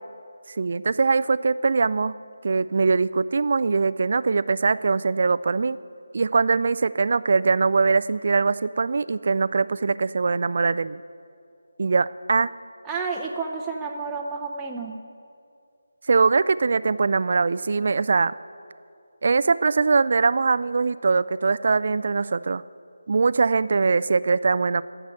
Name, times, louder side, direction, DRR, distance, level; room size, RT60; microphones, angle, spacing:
voice 1, 0.6-2.1 2.4-5.8 6.1-11.0 11.8-12.5 16.1-18.3 19.2-22.6 23.1-24.8, right 4 dB, 50° right, 17 dB, 0.3 m, -22 dB
voice 2, 12.8-15.0, right 4 dB, 10° right, -1 dB, 0.7 m, -30 dB
11.0 x 8.1 x 9.5 m, 2.4 s
figure-of-eight pair, 155°, 0 cm